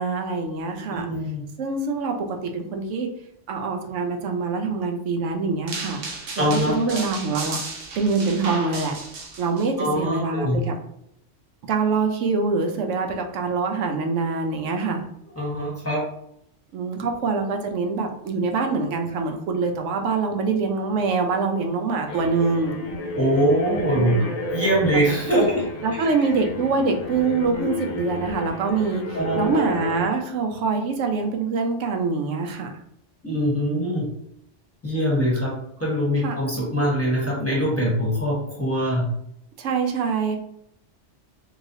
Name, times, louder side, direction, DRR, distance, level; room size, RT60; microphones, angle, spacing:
voice 1, 0.0-1.1 1.6-3.1 3.5-6.0 6.4-6.5 6.7-7.6 8.0-8.9 9.4-10.7 11.7-15.1 16.7-22.7 23.7-24.3 25.8-32.7 36.2-36.4 39.6-40.4, right 4 dB, 85° right, 4 dB, 0.9 m, -25 dB
voice 2, 0.9-1.4 6.4-7.0 9.8-10.6 15.4-16.0 23.1-24.1 24.5-25.6 29.1-29.9 33.2-34.1 34.8-35.5 35.8-39.1, equal, 15° left, -6 dB, 0.9 m, -23 dB
sound 1, 5.7-9.7, right 3 dB, 60° right, 0.8 m, -34 dB
sound 2, 22.1-30.1, left 2 dB, 60° left, 0.4 m, -31 dB
3.1 x 2.8 x 2.6 m, 0.75 s
omnidirectional pair, 1.2 m